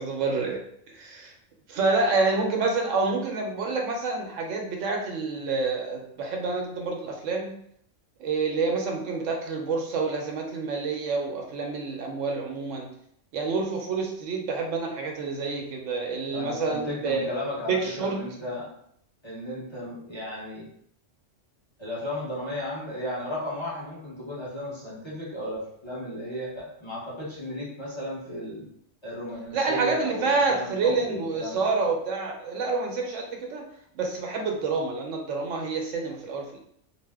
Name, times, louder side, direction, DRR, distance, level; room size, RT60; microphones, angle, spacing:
voice 1, 0.0-1.3 1.7-7.6 8.2-12.9 13.3-17.3 17.7-18.2 29.5-33.6 33.9-36.6, right 4 dB, 80° right, 2 dB, 1.0 m, -28 dB
voice 2, 16.3-18.7 19.2-20.7 21.8-28.6 29.0-31.7, left 1 dB, 25° left, -7 dB, 0.9 m, -34 dB
2.7 x 2.1 x 3.4 m, 0.69 s
omnidirectional pair, 1.3 m